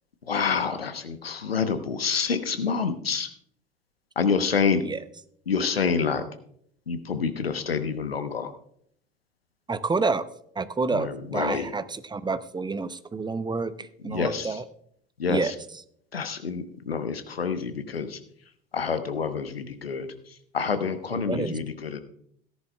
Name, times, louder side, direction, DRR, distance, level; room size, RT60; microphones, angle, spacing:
voice 1, 0.3-3.3 4.2-4.8 5.5-6.2 6.9-8.5 10.9-11.7 14.0-14.6 15.2-15.5 16.1-18.2 18.7-22.0, left 5 dB, 85° left, 10 dB, 0.9 m, -27 dB
voice 2, 9.7-10.3 10.6-14.6 15.3-15.5 21.1-21.6, right 4 dB, 15° right, 14 dB, 0.6 m, -29 dB
17.0 x 10.5 x 2.2 m, 0.67 s
figure-of-eight pair, 65°, 29 cm